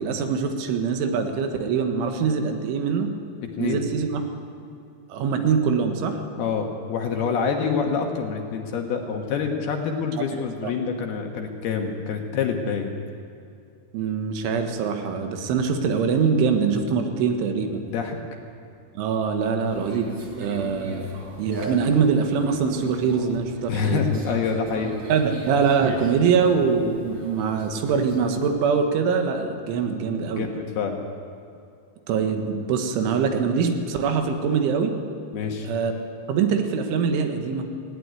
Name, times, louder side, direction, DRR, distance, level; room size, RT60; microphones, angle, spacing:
voice 1, 0.0-3.1 3.6-4.2 5.1-6.2 10.3-10.4 13.9-17.8 19.0-24.0 25.1-30.5 32.1-34.9 35.6-35.9 36.3-37.7, right 6 dB, 80° right, 5 dB, 3.9 m, -23 dB
voice 2, 6.4-12.9 17.9-18.2 23.7-24.9 30.3-31.0 35.3-35.7, left 6 dB, 65° left, 3 dB, 2.9 m, -26 dB
Conversation, 19.7-28.5, right 1 dB, 35° right, 4.7 m, -38 dB
18.0 x 17.5 x 9.6 m, 2.5 s
omnidirectional pair, 5.6 m